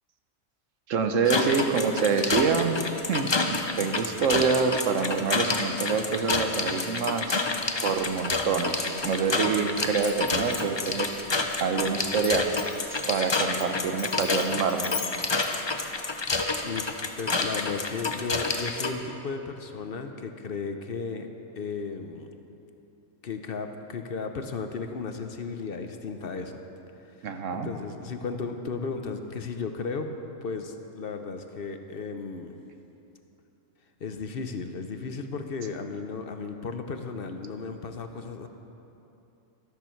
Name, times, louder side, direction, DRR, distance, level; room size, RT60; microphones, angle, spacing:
voice 1, 0.9-2.8 3.1-11.2 11.6-12.5 12.9-14.9 27.2-27.7, right 5 dB, 80° right, 6 dB, 1.2 m, -26 dB
sound 1, 1.3-18.9, left 3 dB, 30° left, 0.5 m, -29 dB
Glass, 10.0-16.5, left 6 dB, 80° left, 1.4 m, -40 dB
voice 2, 16.6-21.3 21.6-22.3 23.2-26.6 27.2-27.3 27.5-30.1 30.4-32.6 34.0-38.5, left 4 dB, 55° left, 6 dB, 0.9 m, -35 dB
13.5 x 13.0 x 4.5 m, 2.9 s
omnidirectional pair, 1.3 m